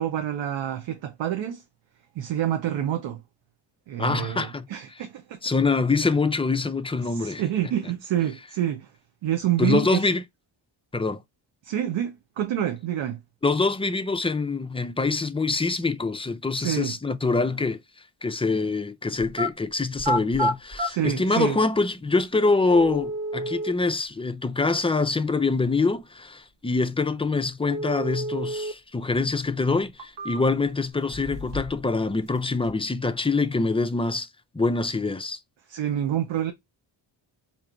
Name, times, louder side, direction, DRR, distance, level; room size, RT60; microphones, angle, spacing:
voice 1, 0.0-1.6 2.2-3.2 3.9-5.4 7.0-8.9 9.2-10.0 11.6-13.2 16.5-16.9 20.9-21.6 35.7-36.5, right 11 dB, 90° right, 0.7 m, -27 dB
voice 2, 4.0-5.0 5.4-7.4 9.6-10.2 10.9-11.2 13.4-17.8 18.2-34.3 34.5-35.4, left 3 dB, 15° left, 0.4 m, -25 dB
sound 1, 19.2-19.5 20.0-20.9 21.9-22.0 22.7-23.7 27.7-28.7 29.1-29.2 29.8-30.7 31.1-31.8 32.1-32.7, equal, 70° right, 1.4 m, -29 dB
4.4 x 2.8 x 2.5 m
cardioid pair, 70°, 44 cm